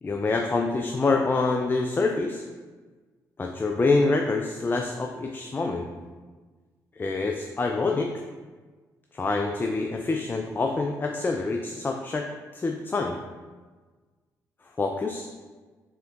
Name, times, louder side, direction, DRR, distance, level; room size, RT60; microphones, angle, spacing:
voice 1, 0.0-2.4 3.4-5.9 7.0-8.1 9.1-12.3 12.5-13.2 14.8-15.3, left 3 dB, 25° left, 3 dB, 0.3 m, -26 dB
4.3 x 3.7 x 2.4 m, 1.4 s
hypercardioid pair, 45°, 9 cm